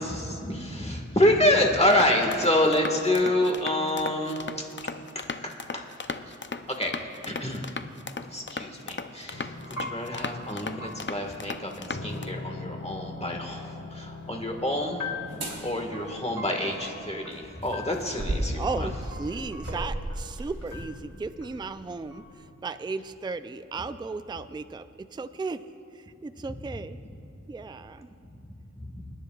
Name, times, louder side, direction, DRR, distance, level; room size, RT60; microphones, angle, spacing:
voice 1, 0.0-4.6 5.4-5.8 6.3-6.4 6.7-7.7 8.3-15.1 15.6-18.9 28.3-28.4 28.8-29.0, left 1 dB, 20° left, 2 dB, 1.6 m, -27 dB
sound 1, 1.9-12.2, left 4 dB, 40° left, 0.6 m, -37 dB
sound 2, 9.3-22.5, left 3 dB, 65° left, 1.4 m, -42 dB
sound 3, 15.3-15.6 17.3-20.8 21.5-21.6, right 1 dB, 55° right, 3.5 m, -34 dB
voice 2, 18.6-22.3 22.6-25.6 25.9-27.0 27.5-28.1, right 4 dB, 15° right, 11 dB, 0.4 m, -35 dB
29.0 x 9.8 x 2.4 m, 2.5 s
wide cardioid pair, 60°, 30 cm